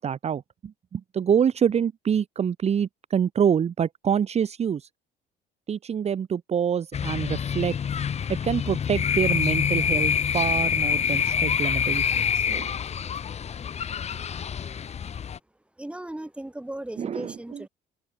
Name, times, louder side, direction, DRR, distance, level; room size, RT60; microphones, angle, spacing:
voice 1, 0.0-4.9 5.7-7.8 8.4-12.7 17.0-17.6, right 8 dB, 40° right, 1.3 m, -26 dB
sound 1, 6.9-15.4, left 7 dB, 40° left, 1.7 m, -26 dB
voice 2, 15.8-17.7, right 1 dB, 5° right, 6.5 m, -37 dB
open air
cardioid pair, 110°, 17 cm